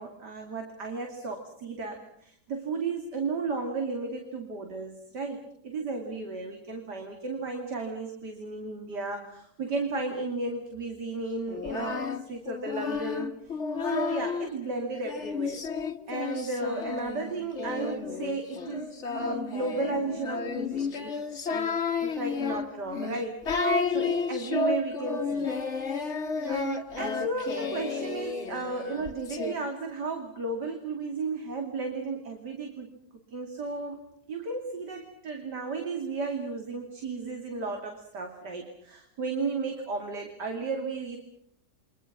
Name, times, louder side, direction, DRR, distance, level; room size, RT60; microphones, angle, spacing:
voice 1, 0.0-13.6 13.9-15.7 16.1-21.2 21.5-25.5 26.4-32.9 33.3-34.0 34.3-41.2, right 3 dB, 60° right, 3 dB, 3.3 m, -34 dB
Singing, 11.5-14.5 15.1-29.5, left 4 dB, 40° left, 1.9 m, -32 dB
29.5 x 24.0 x 6.0 m, 0.70 s
omnidirectional pair, 2.0 m